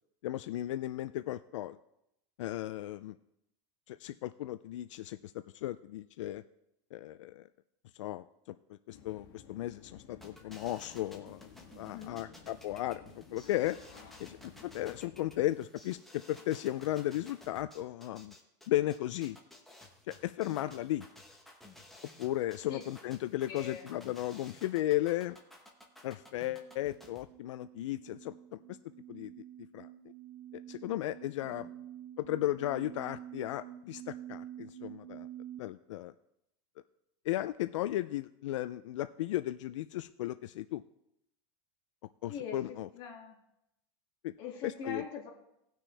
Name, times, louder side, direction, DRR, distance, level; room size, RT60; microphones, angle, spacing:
voice 1, 0.2-1.8 2.4-3.2 3.9-6.4 6.9-7.5 7.9-8.3 8.7-11.5 11.8-13.0 13.3-13.8 14.2-14.4 14.6-16.0 16.3-18.3 18.7-19.4 20.1-21.0 22.2-25.4 26.0-28.8 29.1-29.3 29.7-29.9 30.7-31.7 32.2-35.3 35.6-36.1 37.3-40.8 42.2-42.9 44.2-44.3 44.6-45.0, left 14 dB, 80° left, 12 dB, 0.4 m, -35 dB
sound 1, 8.9-15.4, left 7 dB, 55° left, 1.5 m, -55 dB
sound 2, 10.2-27.2, left 1 dB, ahead, 1.0 m, -55 dB
voice 2, 11.9-12.2 20.4-20.7 22.7-22.8 23.5-23.9 31.4-31.7 42.3-43.3 44.4-45.3, left 6 dB, 35° left, -1 dB, 2.3 m, -43 dB
sound 3, 26.2-35.6, right 11 dB, 30° right, 0.3 m, -48 dB
18.5 x 6.2 x 3.3 m, 0.82 s
supercardioid pair, 170°, 15 cm